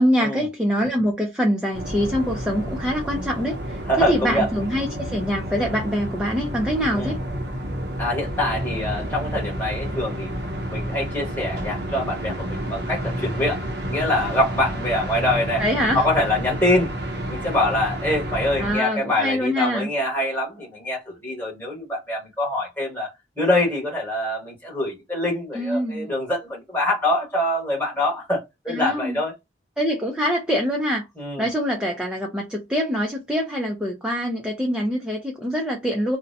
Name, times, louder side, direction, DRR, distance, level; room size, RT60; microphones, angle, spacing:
voice 1, 0.0-7.2 15.6-16.0 18.6-19.9 25.5-26.1 28.7-29.2 29.8-31.1 31.4-36.2, equal, 5° right, 0.4 m, -24 dB
sound 1, 1.7-18.7, equal, 65° right, 0.6 m, -30 dB
voice 2, 3.9-4.5 6.9-7.2 8.0-10.3 10.7-15.6 15.9-16.9 17.3-23.1 23.4-29.3 31.2-31.5, left 1 dB, 10° left, 1.2 m, -24 dB
2.6 x 2.1 x 2.5 m
head